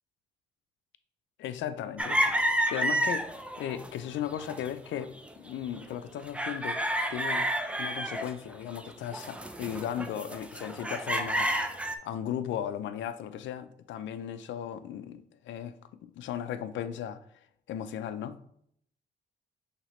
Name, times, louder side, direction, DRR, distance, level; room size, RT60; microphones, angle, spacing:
voice 1, 1.4-2.2 2.7-3.3 3.6-5.1 5.4-6.8 7.1-7.5 7.8-11.5 12.0-15.7 16.0-17.2 17.7-18.4, left 10 dB, 70° left, 0.4 m, -36 dB
sound 1, 2.0-3.9 4.3-4.7 5.2-5.9 6.3-12.0, right 1 dB, 5° right, 0.4 m, -30 dB
5.7 x 2.9 x 3.0 m
cardioid pair, 90°, 20 cm